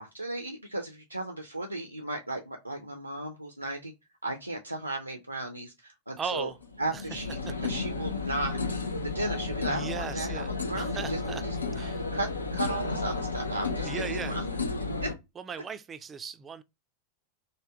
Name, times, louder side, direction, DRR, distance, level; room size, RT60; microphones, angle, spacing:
voice 1, 0.0-3.9 4.2-6.5 6.8-14.4 15.0-15.1, right 2 dB, 85° right, 0.5 m, -35 dB
voice 2, 6.2-6.6 6.9-7.0 9.7-11.4 11.7-12.0 13.8-14.4 15.4-16.6, right 6 dB, 20° right, 0.3 m, -37 dB
sound 1, 6.4-15.1, left 3 dB, 75° left, 0.5 m, -33 dB
3.4 x 2.2 x 3.6 m
figure-of-eight pair, 90°, 0 cm